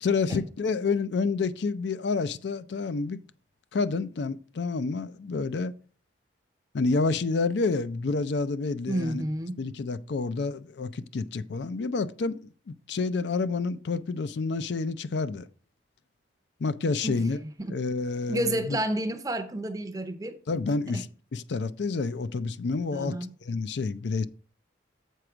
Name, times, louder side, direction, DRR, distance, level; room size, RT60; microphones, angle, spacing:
voice 1, 0.0-3.2 3.7-5.7 6.7-9.2 9.6-15.5 16.6-17.4 17.7-18.8 20.5-21.1 21.3-23.1 23.5-24.3, left 4 dB, 70° left, 0.4 m, -29 dB
voice 2, 8.9-9.6 17.0-17.7 18.3-20.4 20.9-21.0 22.9-23.3, right 1 dB, 20° right, 0.6 m, -31 dB
7.7 x 4.7 x 4.9 m
head